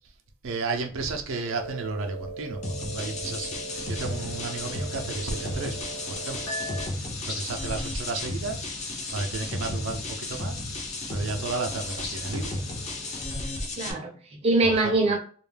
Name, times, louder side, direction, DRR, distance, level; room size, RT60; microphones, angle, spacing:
voice 1, 0.4-5.8 6.1-6.5 7.2-8.7 9.1-10.6 11.1-12.6 14.6-15.1, right 3 dB, 80° right, 0.5 m, -33 dB
sound 1, 1.4-6.9, right 2 dB, 55° left, 1.1 m, -39 dB
sound 2, 2.6-13.9, left 2 dB, 35° left, 0.5 m, -34 dB
sound 3, 3.7-13.4, left 3 dB, 90° left, 0.8 m, -44 dB
voice 2, 13.0-15.2, right 2 dB, 30° right, 0.5 m, -25 dB
2.3 x 2.1 x 3.2 m
head